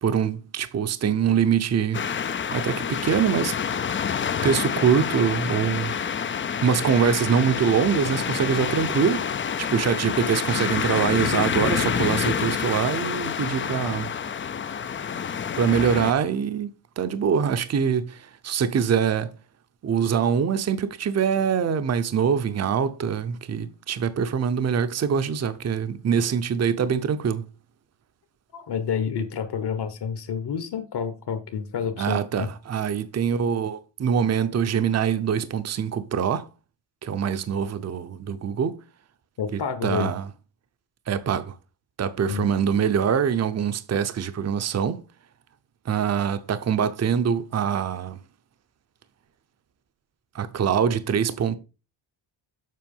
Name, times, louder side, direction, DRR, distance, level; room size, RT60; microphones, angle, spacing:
voice 1, 0.0-2.1 2.5-3.5 4.4-5.9 6.6-9.3 9.6-14.2 15.6-19.3 19.8-27.5 32.0-36.5 37.0-38.8 39.5-40.3 41.1-41.6 42.0-45.0 45.9-48.2 50.3-51.6, right 7 dB, 35° right, 0.7 m, -24 dB
sound 1, 1.9-16.1, left 7 dB, 30° left, 0.4 m, -27 dB
voice 2, 28.5-32.5 39.4-40.1 42.3-42.5, left 7 dB, 55° left, 1.3 m, -29 dB
7.6 x 5.8 x 5.4 m
wide cardioid pair, 170°, 47 cm